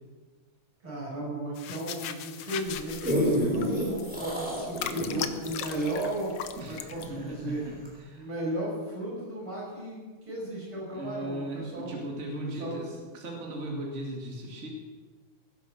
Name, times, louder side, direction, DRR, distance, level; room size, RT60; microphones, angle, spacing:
voice 1, 0.8-6.4 6.6-7.7 8.1-12.0 12.4-12.8, right 1 dB, 85° right, -5 dB, 7.0 m, -35 dB
sound 1, 1.5-7.1, left 9 dB, 80° left, 1.7 m, -38 dB
sound 2, 2.8-7.3 7.9-8.0, equal, 5° right, 3.5 m, -30 dB
voice 2, 6.6-8.3 10.9-14.7, right 1 dB, 35° right, -1 dB, 2.7 m, -37 dB
17.5 x 10.0 x 6.5 m, 1.5 s
omnidirectional pair, 2.3 m